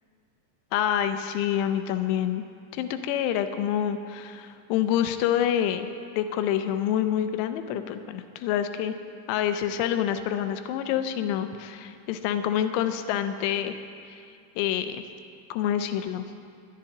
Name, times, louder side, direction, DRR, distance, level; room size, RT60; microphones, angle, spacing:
voice 1, 0.7-2.4 2.7-5.9 6.2-8.9 9.3-13.7 14.6-15.0 15.5-16.2, left 10 dB, 80° left, 9 dB, 2.7 m, -27 dB
20.5 x 11.0 x 2.9 m, 2.3 s
omnidirectional pair, 5.2 m